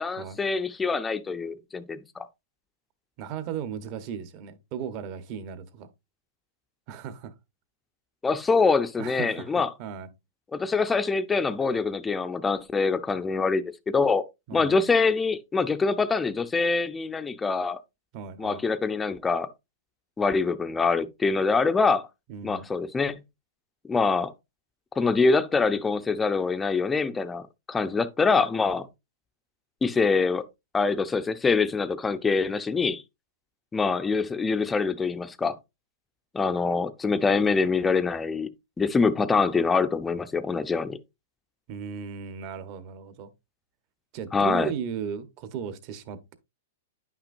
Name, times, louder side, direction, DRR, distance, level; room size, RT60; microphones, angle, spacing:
voice 1, 0.0-2.3 8.2-9.7 10.5-14.2 14.5-17.8 18.4-19.5 20.2-22.1 22.4-23.2 23.8-24.3 25.0-28.9 29.8-30.4 30.7-33.0 33.7-35.6 36.3-38.5 38.8-41.0 44.3-44.7, left 4 dB, 10° left, 0.5 m, -24 dB
voice 2, 3.2-5.9 6.9-7.3 9.0-10.1 14.5-14.8 18.1-18.6 22.3-22.7 41.7-43.3 44.1-46.3, right 7 dB, 40° right, 0.9 m, -36 dB
9.9 x 5.9 x 2.5 m
hypercardioid pair, 155°, 0 cm